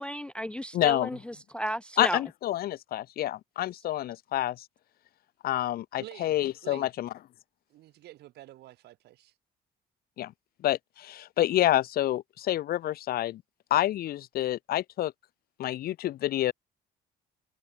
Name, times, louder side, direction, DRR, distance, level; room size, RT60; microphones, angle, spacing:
voice 1, 0.0-2.2, equal, 5° left, 0.3 m, -34 dB
voice 2, 0.7-1.1 2.0-4.6 5.4-7.1 10.2-10.3 10.6-13.4 13.7-15.1 15.6-16.5, left 13 dB, 65° left, 1.0 m, -28 dB
voice 3, 6.0-6.9 7.7-9.3, right 15 dB, 75° right, 3.8 m, -48 dB
cardioid pair, 110°, 17 cm